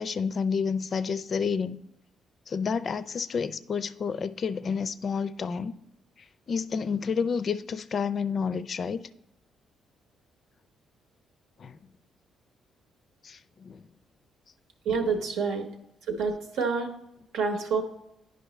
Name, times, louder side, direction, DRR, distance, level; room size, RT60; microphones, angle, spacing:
voice 1, 0.0-1.8 2.5-5.7 6.5-9.0 11.6-11.8 13.2-13.9 14.9-15.0, left 6 dB, 50° left, 0.4 m, -30 dB
voice 2, 14.8-15.7 16.1-16.9 17.3-17.8, right 5 dB, 90° right, 1.0 m, -27 dB
9.8 x 5.3 x 3.2 m
cardioid pair, 90°, 0 cm